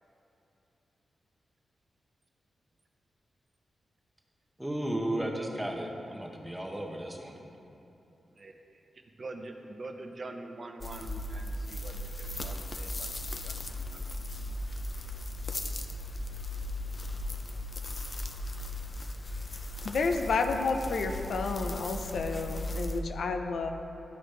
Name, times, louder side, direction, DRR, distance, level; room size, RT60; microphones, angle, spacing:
voice 1, 4.6-7.4, right 1 dB, 5° right, 0 dB, 0.8 m, -34 dB
voice 2, 9.1-14.1, right 2 dB, 40° right, 4 dB, 0.6 m, -45 dB
sound 1, 10.8-23.0, left 1 dB, 30° left, 0.5 m, -37 dB
voice 3, 19.8-23.7, left 4 dB, 75° left, 5 dB, 0.5 m, -30 dB
13.0 x 5.0 x 3.2 m, 3.0 s
wide cardioid pair, 135°, 0 cm